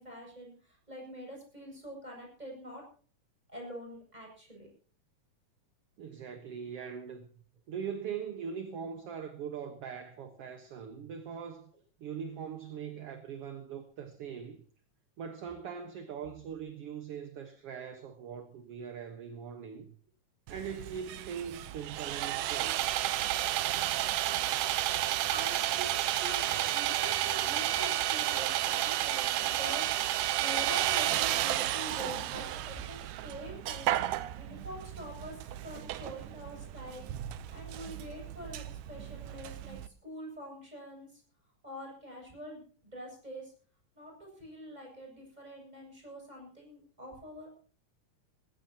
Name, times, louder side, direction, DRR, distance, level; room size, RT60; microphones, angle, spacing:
voice 1, 0.0-2.8 3.5-4.7 25.3-34.0 34.4-35.4 35.6-37.1 37.5-41.2 41.6-43.5 43.9-47.6, equal, 10° right, 7.6 m, -45 dB
voice 2, 6.0-7.3 7.7-11.7 12.0-14.6 15.2-19.9 20.5-22.8, right 7 dB, 55° right, 2.0 m, -41 dB
Sawing, 20.5-39.9, right 13 dB, 80° right, 2.3 m, -32 dB
21.5 x 16.0 x 2.9 m
omnidirectional pair, 3.7 m